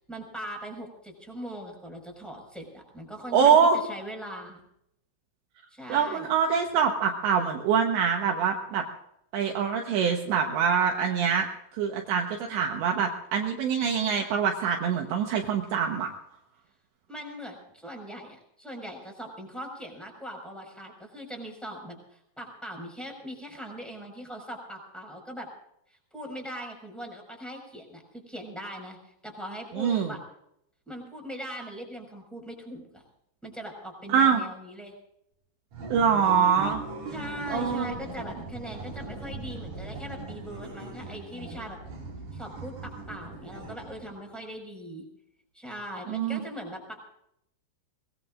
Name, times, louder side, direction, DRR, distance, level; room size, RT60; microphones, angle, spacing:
voice 1, 0.1-4.6 5.7-6.3 17.1-25.5 25.9-30.2 30.8-33.0 33.4-34.9 37.1-41.8 42.3-45.1 45.5-47.1, equal, ahead, 2 dB, 4.7 m, -40 dB
voice 2, 3.3-3.8 5.9-8.8 9.3-11.5 11.7-16.1 29.8-30.1 34.1-34.4 35.9-36.8 37.5-37.9 46.1-46.4, right 7 dB, 70° right, 2 dB, 3.1 m, -24 dB
sound 1, 35.7-44.3, right 2 dB, 45° right, 4.1 m, -39 dB
23.5 x 21.0 x 2.5 m, 0.77 s
omnidirectional pair, 5.9 m